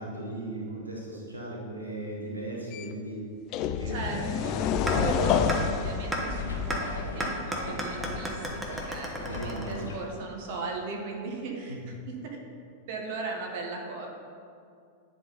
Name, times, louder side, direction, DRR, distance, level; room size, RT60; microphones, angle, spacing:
voice 1, 0.0-3.2 3.7-4.8 9.3-9.9 11.7-11.8, right 1 dB, 85° right, -2 dB, 0.9 m, -37 dB
sound 1, 2.7-2.8 3.5-7.3, left 8 dB, 40° left, 0.3 m, -29 dB
voice 2, 3.9-4.6 5.0-12.4 12.9-14.1, right 3 dB, 50° right, 1 dB, 1.1 m, -37 dB
sound 2, 4.2-10.0, left 4 dB, 70° left, 0.9 m, -38 dB
sound 3, 4.9-5.0 5.5-5.6 6.1-6.2 6.7-6.8 7.2-10.1, right 1 dB, 10° right, 1.0 m, -33 dB
10.0 x 3.8 x 4.0 m, 2.3 s
figure-of-eight pair, 90°, 0 cm